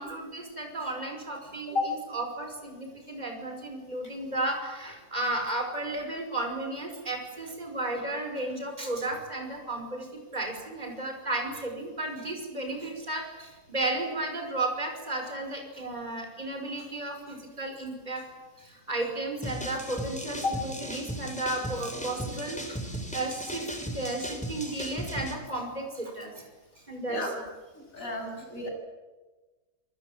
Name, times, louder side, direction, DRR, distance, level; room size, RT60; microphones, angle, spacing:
voice 1, 0.0-18.2 18.6-22.8 23.1-26.4 26.9-27.3, right 2 dB, 25° right, 3 dB, 5.6 m, -34 dB
sound 1, 19.4-25.4, equal, 5° left, 4.0 m, -37 dB
voice 2, 27.9-28.7, left 3 dB, 55° left, 3 dB, 8.3 m, -30 dB
28.0 x 21.5 x 8.8 m, 1.2 s
omnidirectional pair, 1.6 m